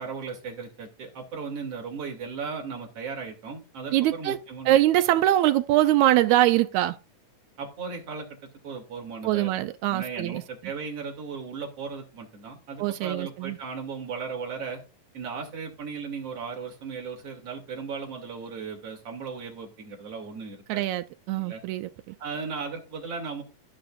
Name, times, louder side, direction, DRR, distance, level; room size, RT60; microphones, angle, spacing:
voice 1, 0.0-4.7 7.6-9.6 9.9-14.8 15.1-20.8 21.3-21.6 22.2-23.4, right 5 dB, 45° right, 3.6 m, -36 dB
voice 2, 3.9-4.4 4.6-7.0 9.2-10.4 12.8-13.6 20.7-22.1, right 14 dB, 90° right, 1.6 m, -23 dB
14.5 x 6.1 x 2.5 m
omnidirectional pair, 4.0 m